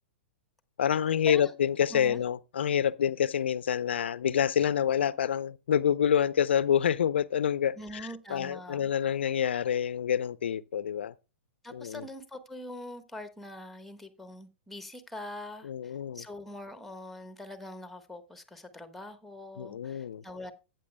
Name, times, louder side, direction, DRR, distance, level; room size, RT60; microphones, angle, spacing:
voice 1, 0.8-11.1 11.7-12.1 15.6-16.2 19.6-20.2, left 9 dB, 70° left, 0.5 m, -27 dB
voice 2, 1.9-2.2 7.8-8.9 11.6-20.5, left 1 dB, ahead, 1.3 m, -43 dB
14.5 x 8.8 x 2.2 m
hypercardioid pair, 110°, 6 cm